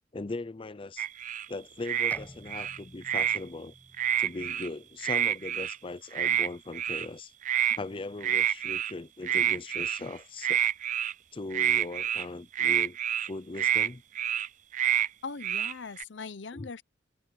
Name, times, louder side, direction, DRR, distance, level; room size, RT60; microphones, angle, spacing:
voice 1, 0.1-1.1 1.5-3.7 4.2-7.3 7.7-10.6 11.3-13.0 13.3-14.0 16.5-16.7, left 2 dB, 30° left, 0.5 m, -39 dB
sound 1, 1.0-1.4 1.8-2.2 2.5-3.4 3.9-4.7 5.0-5.8 6.1-6.5 6.7-7.0 7.4-7.8 8.2-8.9 9.2-10.1 10.4-11.1 11.5-12.2 12.5-13.3 13.6-13.9 14.1-14.5 14.7-15.1 15.4-16.0, right 10 dB, 45° right, 0.4 m, -27 dB
Bowed string instrument, 2.1-5.7, equal, 10° left, 5.4 m, -52 dB
voice 2, 15.2-16.8, left 4 dB, 75° left, 0.8 m, -40 dB
head